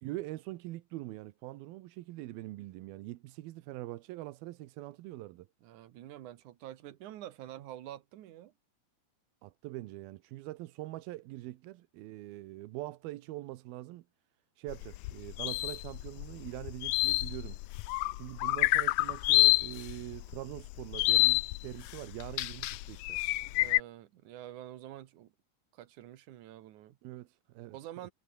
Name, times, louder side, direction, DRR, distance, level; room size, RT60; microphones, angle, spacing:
voice 1, 0.0-5.5 9.4-14.0 14.6-17.6 18.1-23.2 27.0-27.8, right 17 dB, 90° right, 2.8 m, -43 dB
voice 2, 5.6-8.5 23.6-25.3 25.7-27.0 27.7-28.1, right 13 dB, 65° right, 2.3 m, -47 dB
sound 1, 14.7-23.8, left 19 dB, 80° left, 2.2 m, -28 dB
omnidirectional pair, 4.2 m